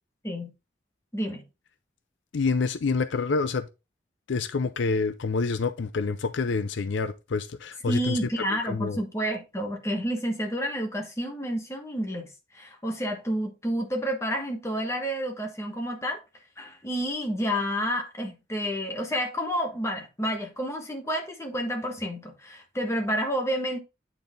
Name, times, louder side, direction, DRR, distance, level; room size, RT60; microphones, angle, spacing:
voice 1, 1.1-1.4 7.9-12.3 12.5-16.2 16.6-23.8, equal, 15° left, 1.3 m, -30 dB
voice 2, 2.3-3.7 4.3-9.0, left 4 dB, 75° left, 0.5 m, -27 dB
8.8 x 4.0 x 3.6 m
head